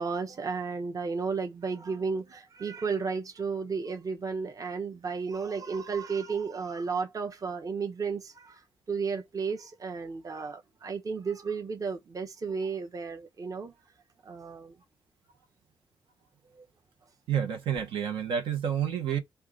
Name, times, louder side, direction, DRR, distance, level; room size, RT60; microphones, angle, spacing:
voice 1, 0.0-8.6 8.9-13.7 14.2-14.8 16.5-16.6, right 5 dB, 40° right, 0.9 m, -33 dB
voice 2, 17.3-19.2, right 8 dB, 80° right, 1.1 m, -29 dB
4.5 x 2.4 x 3.9 m
cardioid pair, 65°, 9 cm